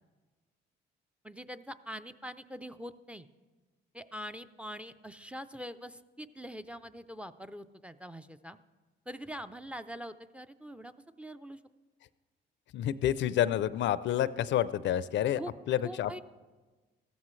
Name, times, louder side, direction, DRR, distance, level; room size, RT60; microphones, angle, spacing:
voice 1, 1.2-3.3 3.9-8.6 9.1-11.6 15.4-15.5 15.8-16.2, equal, 5° right, 12 dB, 0.4 m, -43 dB
voice 2, 12.7-15.4 15.7-16.2, left 11 dB, 70° left, 16 dB, 0.4 m, -29 dB
15.0 x 13.5 x 3.2 m, 1.3 s
cardioid pair, 90°, 20 cm